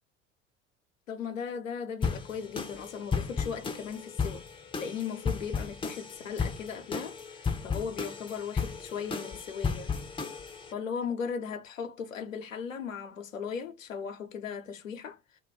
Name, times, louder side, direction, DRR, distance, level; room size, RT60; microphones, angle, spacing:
voice 1, 1.1-4.5 4.8-10.0 10.7-15.2, left 6 dB, 80° left, 0.6 m, -37 dB
sound 1, 2.0-10.7, left 5 dB, 15° left, 0.5 m, -34 dB
2.3 x 2.2 x 3.2 m
figure-of-eight pair, 70°, 38 cm